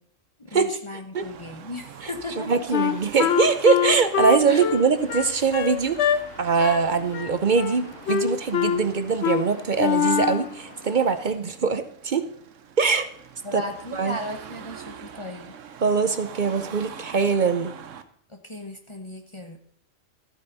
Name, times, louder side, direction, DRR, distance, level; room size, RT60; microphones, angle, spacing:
voice 1, 0.4-2.7 4.4-4.7 13.4-15.6 18.3-19.6, left 1 dB, 25° left, 3 dB, 1.0 m, -36 dB
Car passing by / Traffic noise roadway noise / Engine, 1.1-18.0, right 7 dB, 75° right, 1.2 m, -44 dB
voice 2, 2.5-12.3 12.8-13.1 13.5-13.6 13.9-14.2 15.8-17.7, right 5 dB, 45° right, 11 dB, 0.7 m, -22 dB
Wind instrument woodwind instrument, 2.7-6.2 6.6-6.9 7.1-7.8 8.1-8.8 9.2-9.4 9.8-10.5, left 10 dB, 65° left, 0.9 m, -24 dB
sound 1, 4.5-11.3, left 1 dB, 90° left, 4.8 m, -46 dB
13.5 x 9.1 x 4.0 m, 0.64 s
omnidirectional pair, 1.3 m